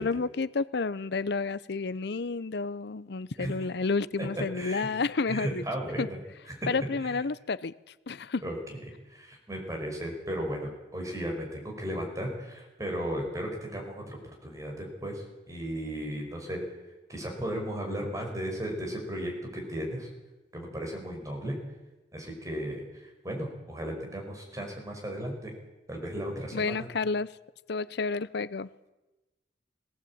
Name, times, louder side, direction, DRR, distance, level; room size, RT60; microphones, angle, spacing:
voice 1, 0.0-5.6 6.0-6.1 6.7-7.7 8.1-8.4 26.5-27.3 27.7-28.7, left 4 dB, 65° left, 18 dB, 0.7 m, -30 dB
voice 2, 4.5-4.9 5.3-6.2 6.5-6.7 7.0-7.2 8.4-8.6 9.1-14.2 14.4-16.6 17.1-20.1 20.5-21.6 22.1-25.5 25.9-26.9, equal, 20° right, 1 dB, 5.3 m, -35 dB
18.5 x 17.5 x 8.7 m, 1.1 s
head